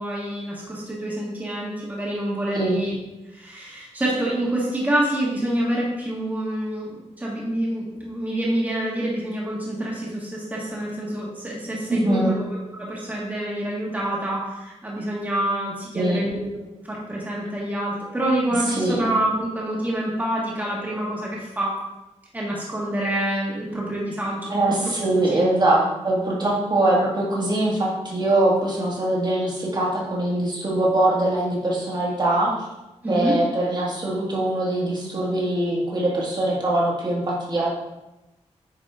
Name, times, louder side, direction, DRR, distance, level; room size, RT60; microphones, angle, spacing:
voice 1, 0.0-2.9 3.3-16.5 16.8-21.8 22.3-24.5 24.8-24.9 25.2-25.4 33.0-33.4, right 1 dB, 15° right, -5 dB, 1.6 m, -27 dB
voice 2, 11.9-12.4 15.9-16.3 18.7-19.0 24.5-32.5 33.1-37.7, right 1 dB, 40° right, -4 dB, 1.8 m, -22 dB
9.2 x 5.0 x 3.7 m, 0.98 s
wide cardioid pair, 155°, 12 cm